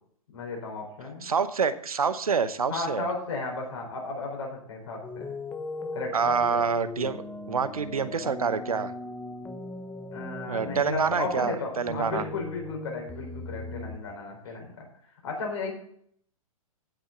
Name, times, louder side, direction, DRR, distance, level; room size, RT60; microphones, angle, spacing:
voice 1, 0.3-1.3 2.7-5.3 5.9-6.7 10.1-14.9 15.2-15.7, left 3 dB, 55° left, 2 dB, 4.4 m, -34 dB
voice 2, 1.2-3.1 6.1-7.2 7.5-8.9 10.5-12.2, right 6 dB, 80° right, 13 dB, 0.9 m, -27 dB
sound 1, 5.0-14.0, left 2 dB, 10° left, 0.8 m, -39 dB
16.0 x 6.5 x 3.8 m, 0.65 s
figure-of-eight pair, 120°, 18 cm